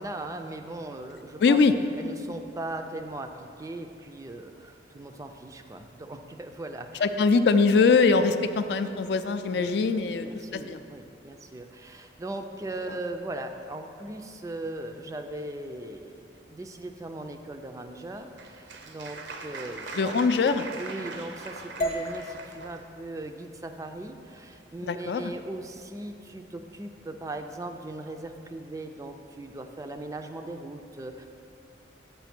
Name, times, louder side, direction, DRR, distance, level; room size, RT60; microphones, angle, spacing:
voice 1, 0.0-1.6 2.0-7.1 9.5-9.7 10.0-20.2 20.8-31.3, right 2 dB, 20° right, 6 dB, 0.3 m, -39 dB
voice 2, 1.4-1.7 7.0-10.3 10.5-10.8 20.0-20.7 24.8-25.3, left 4 dB, 60° left, 10 dB, 0.3 m, -22 dB
Applause, 18.0-22.8, right 3 dB, 80° right, 0.7 m, -41 dB
sound 1, 21.8-25.9, equal, 45° left, 0.8 m, -38 dB
6.9 x 5.6 x 5.9 m, 2.6 s
head